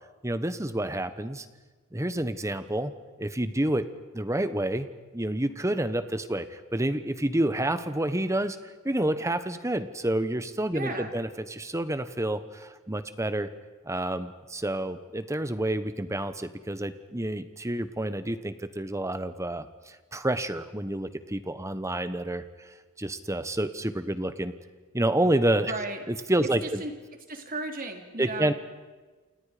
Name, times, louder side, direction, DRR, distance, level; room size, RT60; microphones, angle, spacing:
voice 1, 0.2-1.5 1.9-2.9 3.2-3.9 4.1-4.9 5.1-8.6 8.8-13.5 13.8-22.7 23.0-24.5 24.9-25.7 26.1-26.8 28.2-28.5, right 1 dB, 15° right, 11 dB, 1.1 m, -29 dB
voice 2, 10.7-11.1 25.7-26.0 26.8-26.9 27.3-28.5, right 2 dB, 40° right, 4 dB, 3.1 m, -35 dB
28.5 x 28.5 x 5.1 m, 1.3 s
head